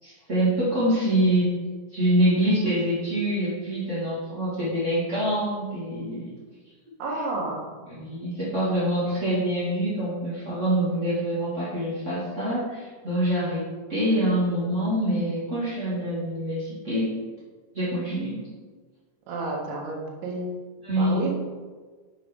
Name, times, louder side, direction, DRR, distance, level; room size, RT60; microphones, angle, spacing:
voice 1, 0.0-1.5 1.9-6.3 7.9-17.2 17.7-18.4 20.8-21.2, right 1 dB, 55° right, -11 dB, 0.8 m, -25 dB
voice 2, 7.0-7.8 19.3-20.5 21.0-21.4, right 2 dB, 80° right, 0 dB, 3.4 m, -30 dB
7.4 x 5.4 x 3.6 m, 1.4 s
omnidirectional pair, 5.2 m